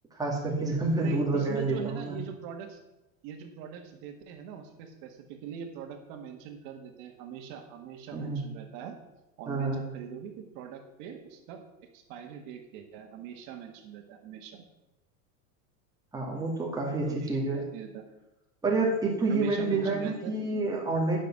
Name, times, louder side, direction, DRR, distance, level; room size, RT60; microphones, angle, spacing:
voice 1, 0.1-2.2 8.1-8.4 9.5-9.8 16.1-17.6 18.6-21.2, right 3 dB, 10° right, -3 dB, 2.3 m, -28 dB
voice 2, 1.0-2.8 3.2-9.0 9.4-11.6 11.9-14.6 17.1-17.4 17.7-18.0 19.3-20.3, right 8 dB, 55° right, 4 dB, 1.9 m, -42 dB
9.0 x 6.4 x 6.2 m, 0.96 s
supercardioid pair, 140°, 40 cm